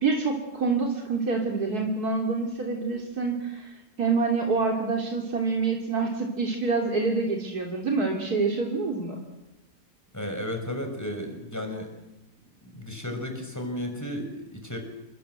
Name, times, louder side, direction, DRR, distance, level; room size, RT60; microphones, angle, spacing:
voice 1, 0.0-9.2, right 4 dB, 85° right, 1 dB, 3.5 m, -27 dB
voice 2, 10.1-11.9 12.6-14.8, left 1 dB, 10° left, 4 dB, 5.9 m, -33 dB
29.0 x 22.5 x 8.1 m, 0.97 s
omnidirectional pair, 1.6 m